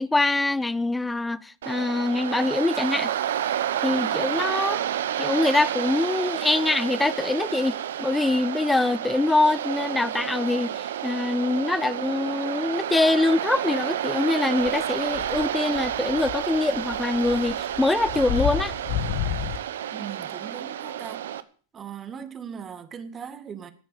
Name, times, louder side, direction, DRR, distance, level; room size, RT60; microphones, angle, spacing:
voice 1, 0.0-3.1 3.8-4.8 5.2-18.7, left 2 dB, 10° left, 0.8 m, -24 dB
Waves surf, 1.6-21.4, right 10 dB, 70° right, 1.0 m, -30 dB
sound 1, 14.6-14.8 15.1-19.6, left 10 dB, 50° left, 1.4 m, -31 dB
voice 2, 19.9-21.3 21.7-23.7, right 7 dB, 25° right, 2.0 m, -39 dB
16.5 x 9.1 x 6.9 m
hypercardioid pair, 100°, 0 cm